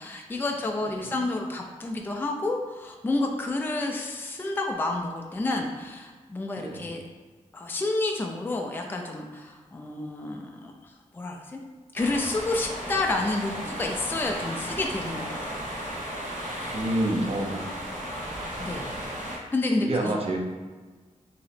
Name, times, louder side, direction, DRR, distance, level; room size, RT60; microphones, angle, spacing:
voice 1, 0.0-7.0 7.5-11.6 11.9-15.6 18.6-18.8 19.5-20.1, left 2 dB, 15° left, 1 dB, 0.4 m, -30 dB
voice 2, 0.8-1.1 6.6-6.8 16.7-17.6 17.9-18.2 18.7-19.0 19.8-20.4, right 1 dB, 50° right, 0 dB, 0.6 m, -29 dB
sound 1, 11.9-19.4, equal, 90° right, 1.0 m, -35 dB
3.0 x 2.8 x 4.1 m, 1.4 s
wide cardioid pair, 130°, 13 cm